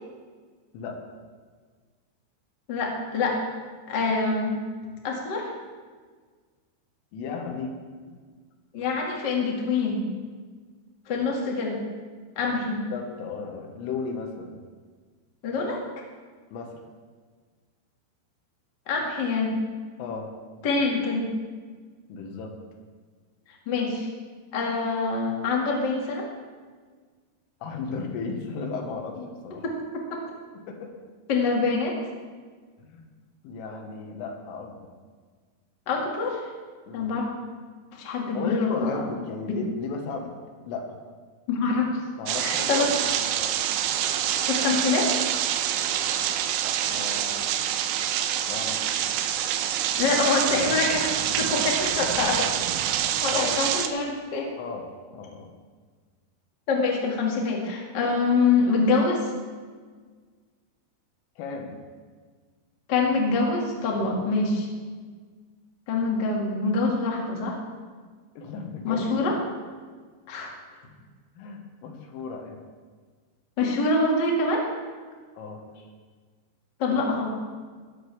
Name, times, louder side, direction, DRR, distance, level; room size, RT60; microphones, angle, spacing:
voice 1, 2.7-3.4 3.9-4.6 5.0-5.5 8.7-10.0 11.0-11.8 12.3-12.8 15.4-15.8 18.8-19.5 20.6-21.2 23.6-24.1 24.5-26.3 29.6-29.7 31.3-31.9 35.8-36.5 36.9-37.3 37.9-39.0 39.5-39.6 41.5-41.9 42.4-43.1 44.5-45.1 50.0-52.5 52.9-54.6 56.7-59.3 62.9-64.7 65.9-67.6 68.8-69.4 70.3-70.5 73.6-74.7 76.8-77.3, left 3 dB, 45° left, -1 dB, 1.4 m, -25 dB
voice 2, 7.1-7.8 8.1-8.2 12.9-14.6 16.5-16.7 20.0-20.3 22.1-22.5 27.6-29.6 30.5-30.9 32.8-33.1 33.4-34.8 36.9-37.1 38.3-40.3 40.7-41.0 42.2-43.6 46.9-47.6 48.5-48.8 53.3-53.6 54.6-54.8 55.1-55.5 61.4-61.8 68.4-69.4 71.4-72.6 75.4-75.9, left 5 dB, 90° left, 2 dB, 4.1 m, -35 dB
sound 1, 42.3-53.9, right 10 dB, 85° right, 3.1 m, -26 dB
18.0 x 13.0 x 3.5 m, 1.5 s
omnidirectional pair, 5.6 m